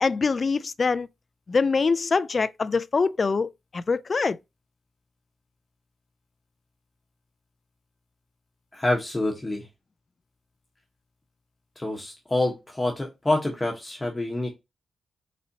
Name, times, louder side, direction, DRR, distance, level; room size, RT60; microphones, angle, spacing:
voice 1, 0.0-1.1 1.5-4.4, left 4 dB, 40° left, 0.3 m, -24 dB
voice 2, 8.7-9.7 11.8-14.5, left 2 dB, 15° left, 1.1 m, -27 dB
4.3 x 4.1 x 2.7 m
wide cardioid pair, 110°, 0 cm